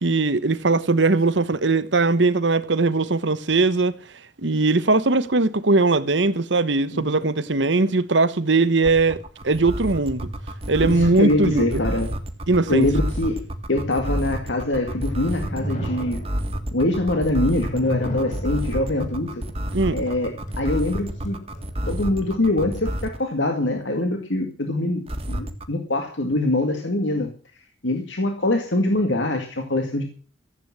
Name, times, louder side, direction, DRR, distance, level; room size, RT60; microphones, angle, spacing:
voice 1, 0.0-4.0 4.4-9.2 9.4-10.3 10.7-11.8 12.5-12.9 19.7-20.0, right 3 dB, 70° right, 1.1 m, -20 dB
sound 1, 8.8-23.2 25.1-25.6, equal, 35° right, 1.7 m, -29 dB
voice 2, 10.8-12.2 12.7-16.2 16.7-19.4 19.9-21.4 21.9-27.3 27.8-30.0, left 2 dB, 75° left, 2.1 m, -24 dB
sound 2, 15.1-21.9, equal, 45° left, 4.9 m, -35 dB
15.0 x 8.7 x 7.4 m
head